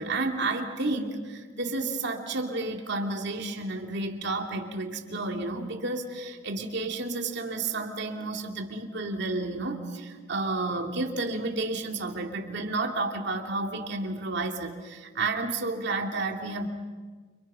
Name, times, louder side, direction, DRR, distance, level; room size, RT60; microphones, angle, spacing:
voice 1, 0.0-16.7, right 3 dB, 60° right, 3 dB, 2.7 m, -31 dB
30.0 x 30.0 x 5.7 m, 1.5 s
head